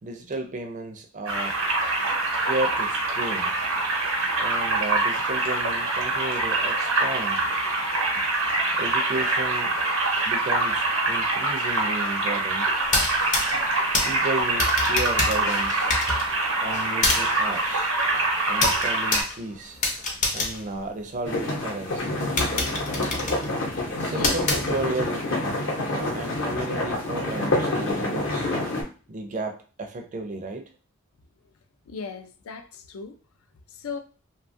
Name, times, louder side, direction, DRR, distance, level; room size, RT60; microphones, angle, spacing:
voice 1, 0.0-1.6 2.4-3.5 4.4-7.4 8.6-9.8 10.2-12.8 14.0-15.9 16.6-17.9 18.5-19.8 20.3-22.1 24.0-25.3 25.8-28.5 29.1-30.7, right 2 dB, 35° right, 0.4 m, -33 dB
sound 1, 1.3-19.2, right 2 dB, 90° right, 0.9 m, -25 dB
sound 2, 12.8-21.5 22.0-22.1 22.4-25.1, left 3 dB, 35° left, 0.6 m, -28 dB
sound 3, 21.2-28.8, left 2 dB, 65° left, 0.8 m, -27 dB
voice 2, 24.1-24.4 31.9-33.2 33.7-34.0, left 5 dB, 85° left, 0.4 m, -37 dB
2.6 x 2.4 x 2.5 m
head